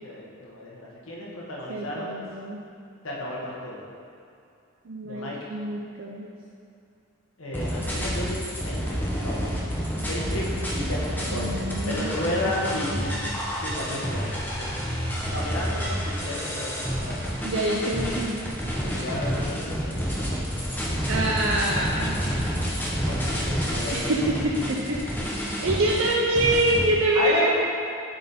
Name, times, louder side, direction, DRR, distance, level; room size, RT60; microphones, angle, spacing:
voice 1, 0.0-2.1 3.0-3.8 5.0-5.4 7.4-9.5 10.0-10.4 10.7-12.9 13.6-14.8 15.3-17.2 18.7-20.9 23.1-24.2 27.1-27.5, left 1 dB, 70° left, -4 dB, 1.3 m, -33 dB
voice 2, 1.7-2.6 4.8-6.3 11.3-13.3 17.4-18.4 21.1-22.2 23.9-25.0 25.4-27.5, right 1 dB, 65° right, -2 dB, 0.5 m, -26 dB
sound 1, 7.5-26.8, equal, 10° left, 0.8 m, -29 dB
7.2 x 4.1 x 4.3 m, 2.6 s
head